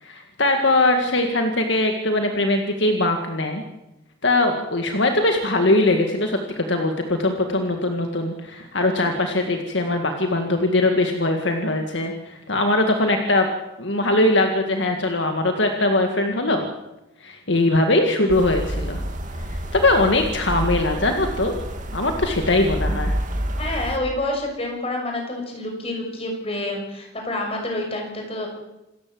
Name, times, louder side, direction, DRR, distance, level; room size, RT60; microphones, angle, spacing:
voice 1, 0.0-3.6 4.2-13.5 13.8-16.6 17.2-19.0 19.5-21.5 21.9-23.1, left 2 dB, 65° left, 4 dB, 2.0 m, -21 dB
sound 1, 18.3-24.0, equal, 40° right, 2.3 m, -28 dB
voice 2, 23.6-28.5, left 1 dB, 30° left, 2 dB, 6.5 m, -28 dB
27.5 x 14.0 x 7.9 m, 0.94 s
head